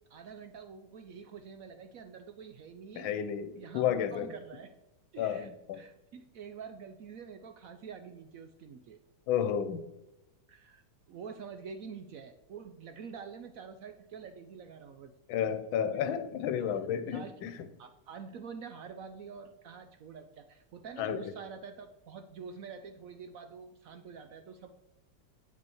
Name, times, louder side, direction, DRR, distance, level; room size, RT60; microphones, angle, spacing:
voice 1, 0.1-3.2 3.5-4.7 5.1-9.0 10.5-10.8 11.1-15.1 17.1-17.5 17.8-24.7, right 6 dB, 70° right, 0.8 m, -47 dB
voice 2, 2.9-4.3 5.2-5.8 9.3-9.8 15.3-17.5 21.0-21.3, left 9 dB, 85° left, 1.5 m, -32 dB
8.0 x 5.4 x 7.0 m
omnidirectional pair, 2.1 m